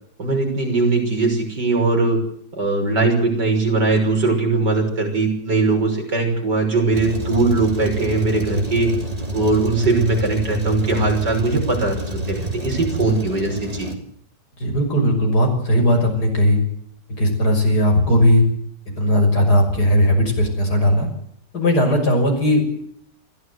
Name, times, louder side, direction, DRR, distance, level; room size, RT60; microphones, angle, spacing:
voice 1, 0.2-2.2 2.6-8.9 9.3-13.9, right 3 dB, 75° right, 2 dB, 6.7 m, -20 dB
Truck, 6.9-13.9, right 1 dB, 20° right, 2.8 m, -28 dB
voice 2, 14.6-16.6 17.2-18.4 19.0-21.1 21.5-22.7, equal, 65° left, 3 dB, 6.8 m, -17 dB
22.5 x 15.5 x 8.1 m, 0.66 s
omnidirectional pair, 1.9 m